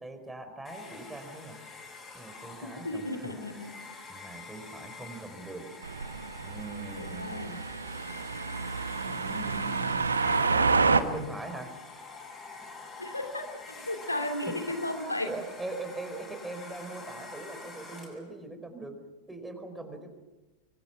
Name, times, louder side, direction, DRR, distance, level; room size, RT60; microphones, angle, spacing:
voice 1, 0.0-1.6 2.1-3.3 4.1-5.7 6.4-7.4 9.1-9.7 10.5-11.7 12.6-12.7 14.0-14.2 14.6-18.9 19.3-20.1, right 2 dB, 5° right, 6 dB, 4.8 m, -41 dB
Domestic sounds home sounds, 0.6-18.3, left 3 dB, 20° left, 7.7 m, -46 dB
voice 2, 2.6-3.7 6.9-7.6 9.0-10.0 13.0-15.3, left 1 dB, 85° left, 4 dB, 2.7 m, -35 dB
sound 1, 5.8-11.0, right 4 dB, 75° right, 1.3 m, -29 dB
26.0 x 24.0 x 6.0 m, 1.1 s
figure-of-eight pair, 90°, 0 cm